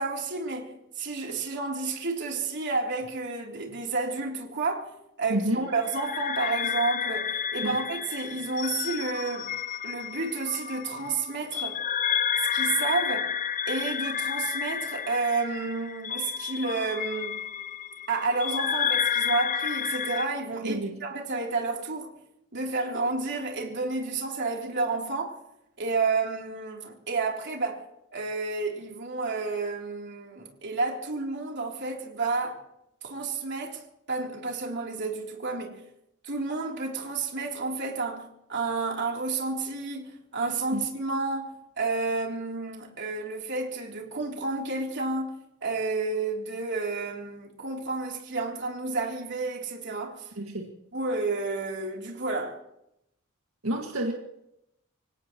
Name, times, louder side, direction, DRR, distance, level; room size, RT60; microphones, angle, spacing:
voice 1, 0.0-4.9 5.2-9.6 9.8-11.8 12.5-13.3 13.7-17.4 18.1-22.1 22.5-25.4 25.8-27.9 28.1-32.6 33.0-33.8 34.1-35.8 36.2-45.3 45.6-50.3 50.9-52.6, right 3 dB, 60° right, 3.4 m, -30 dB
voice 2, 5.3-5.6 7.6-7.8 20.6-20.9 40.7-40.8 50.4-50.7 53.6-54.1, right 1 dB, 80° right, 1.9 m, -29 dB
sound 1, 5.8-20.3, left 9 dB, 40° left, 0.5 m, -31 dB
26.0 x 17.0 x 3.1 m
head